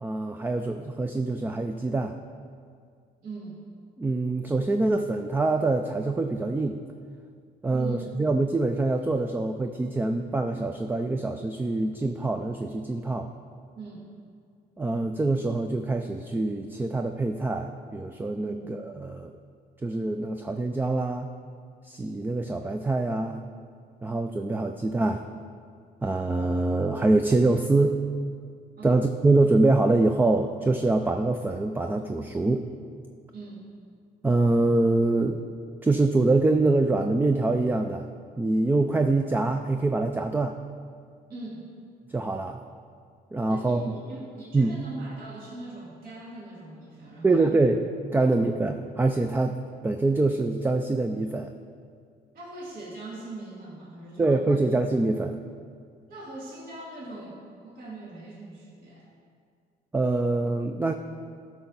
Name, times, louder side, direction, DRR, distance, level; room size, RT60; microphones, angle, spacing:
voice 1, 0.0-2.1 4.0-6.8 7.6-13.3 14.8-19.3 19.8-21.3 21.8-23.4 24.0-25.2 26.0-28.0 28.8-32.7 34.2-35.4 35.8-38.1 38.4-40.6 42.1-42.6 43.3-43.8 44.5-44.7 47.2-47.9 48.1-49.6 49.8-51.5 54.2-55.4 59.9-60.9, right 2 dB, 10° right, 6 dB, 0.4 m, -24 dB
voice 2, 3.2-3.6 7.7-8.1 13.7-14.1 18.5-18.8 28.8-29.0 33.3-33.7 41.3-41.6 43.5-47.5 48.2-48.5 52.3-54.7 56.1-59.1, right 2 dB, 60° right, -5 dB, 2.6 m, -41 dB
12.5 x 5.9 x 4.0 m, 2.2 s
cardioid pair, 110°, 17 cm